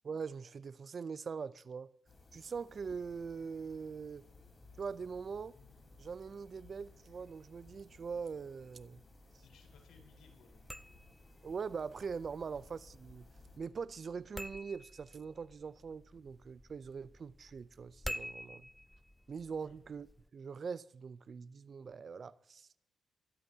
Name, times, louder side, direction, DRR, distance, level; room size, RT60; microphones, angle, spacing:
voice 1, 0.0-1.9 2.3-4.2 4.8-5.5 6.0-9.0 11.4-13.3 13.6-18.7 19.3-20.1 20.3-22.7, right 5 dB, 50° right, 0.5 m, -42 dB
sound 1, 2.1-13.6, left 3 dB, 35° left, 4.2 m, -60 dB
voice 2, 9.4-10.6 19.6-19.7, left 5 dB, 80° left, 4.2 m, -63 dB
sound 2, 10.5-20.3, equal, 5° left, 0.4 m, -50 dB
22.5 x 13.0 x 2.8 m
cardioid pair, 65°, 0 cm